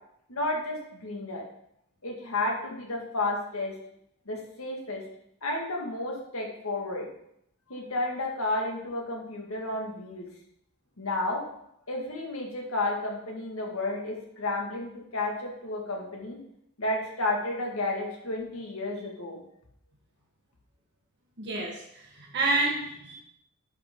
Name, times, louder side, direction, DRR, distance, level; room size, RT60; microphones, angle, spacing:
voice 1, 0.3-1.5 2.0-3.7 4.3-5.0 5.4-7.1 7.7-10.3 11.0-11.4 11.9-16.4 16.8-19.4, left 2 dB, 80° left, 0 dB, 2.0 m, -32 dB
voice 2, 21.4-23.1, right 2 dB, 55° right, -1 dB, 1.4 m, -29 dB
10.5 x 6.3 x 3.7 m, 0.73 s
head